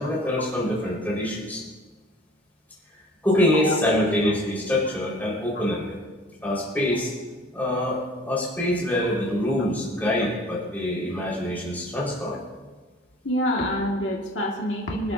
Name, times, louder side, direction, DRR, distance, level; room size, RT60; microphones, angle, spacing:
voice 1, 0.0-1.6 3.2-6.0 6.4-7.1 7.5-12.4, left 1 dB, 10° left, -6 dB, 4.8 m, -25 dB
voice 2, 13.2-15.1, equal, 80° left, -2 dB, 2.0 m, -26 dB
26.0 x 11.5 x 2.8 m, 1.3 s
head